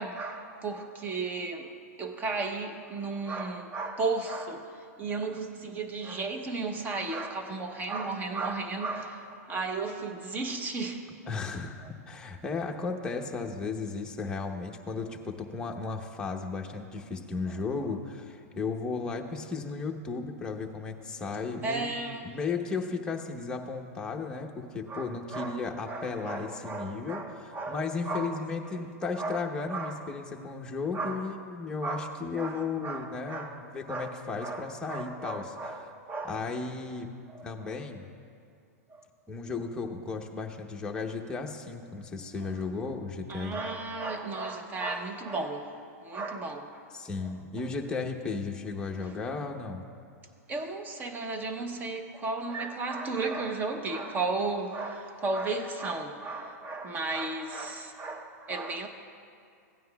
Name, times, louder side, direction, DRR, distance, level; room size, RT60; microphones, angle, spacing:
voice 1, 0.0-11.1 17.5-17.6 21.6-22.4 24.9-28.8 29.2-30.0 30.9-31.3 31.8-36.5 37.3-37.7 38.9-39.0 42.5-42.6 43.3-46.8 47.2-47.3 49.0-49.1 50.5-58.9, right 3 dB, 20° right, 0.9 m, -35 dB
voice 2, 11.3-21.9 22.2-35.5 36.3-37.2 37.4-38.1 39.3-43.6 46.9-49.8, left 4 dB, 10° left, 0.8 m, -35 dB
16.0 x 9.3 x 2.3 m
hypercardioid pair, 130°, 9 cm